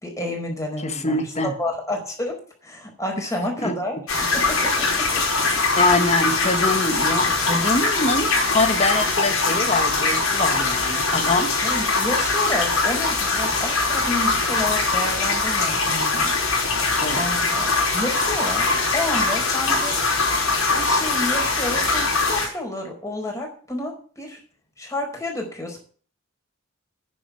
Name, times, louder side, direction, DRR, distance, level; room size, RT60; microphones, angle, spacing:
voice 1, 0.0-2.4 2.6-4.0 4.3-4.9 5.3-5.4 11.6-16.2 16.6-20.2 20.7-24.4 24.8-25.8, left 1 dB, 15° left, 1 dB, 4.8 m, -30 dB
voice 2, 0.8-1.5 3.6-3.8 5.8-11.5 17.0-17.3, left 2 dB, 30° left, 8 dB, 1.5 m, -23 dB
sound 1, 4.1-22.5, left 3 dB, 80° left, 5.1 m, -22 dB
10.0 x 7.5 x 9.4 m, 0.43 s
head